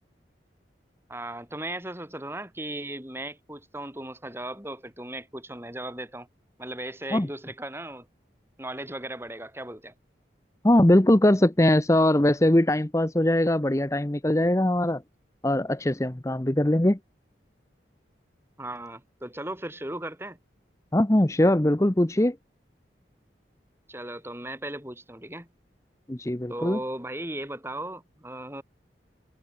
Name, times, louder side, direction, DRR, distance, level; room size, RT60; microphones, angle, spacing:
voice 1, 1.1-6.3 6.6-8.1 8.6-9.9 18.6-20.4 23.9-25.5 26.5-28.6, right 1 dB, 15° right, 6.5 m, -37 dB
voice 2, 10.6-15.0 15.4-17.0 20.9-22.4 26.1-26.8, left 1 dB, 15° left, 0.8 m, -21 dB
head